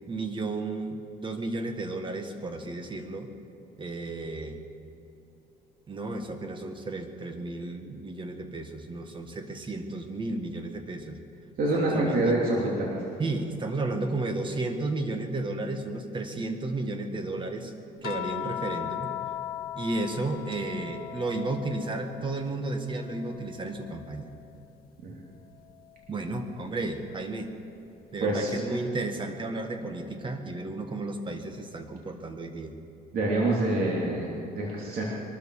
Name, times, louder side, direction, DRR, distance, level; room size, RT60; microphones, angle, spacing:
voice 1, 0.1-3.3 3.8-4.6 5.9-11.2 11.7-12.4 13.2-17.7 18.0-19.1 19.7-24.3 26.1-27.5 28.1-32.7, right 2 dB, 30° right, 6 dB, 1.8 m, -33 dB
voice 2, 11.6-13.1 25.0-25.2 28.2-28.8 33.1-35.0, right 2 dB, 60° right, -4 dB, 3.0 m, -26 dB
sound 1, 18.0-22.5 22.9-24.5 26.0-26.2, left 12 dB, 65° left, 1.0 m, -38 dB
22.5 x 13.0 x 4.9 m, 3.0 s
cardioid pair, 110°, 17 cm